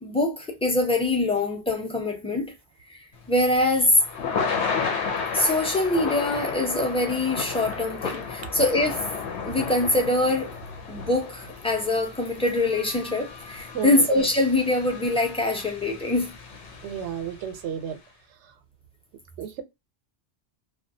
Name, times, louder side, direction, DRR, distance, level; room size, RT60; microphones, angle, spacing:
voice 1, 0.0-2.5 3.3-4.0 5.3-9.0 9.4-10.5 10.9-16.3, left 2 dB, 5° left, 0.5 m, -24 dB
Thunder / Rain, 3.2-17.5, left 5 dB, 80° left, 1.0 m, -33 dB
voice 2, 13.7-14.1 16.8-18.0 19.4-19.6, right 8 dB, 85° right, 0.9 m, -32 dB
2.3 x 2.2 x 2.6 m
omnidirectional pair, 1.1 m